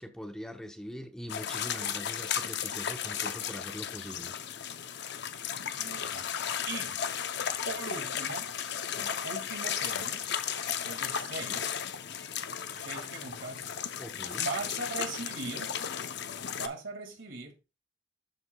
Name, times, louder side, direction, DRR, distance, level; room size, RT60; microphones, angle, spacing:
voice 1, 0.0-4.3 14.0-14.5, equal, 5° left, 0.8 m, -42 dB
sound 1, 1.3-16.7, left 8 dB, 60° left, 0.6 m, -35 dB
voice 2, 5.8-6.3 6.7-7.0 7.6-8.5 8.9-10.4 10.6-11.8 12.7-13.7 14.4-15.7 16.5-17.6, right 3 dB, 70° right, 2.1 m, -40 dB
12.5 x 4.9 x 2.3 m
head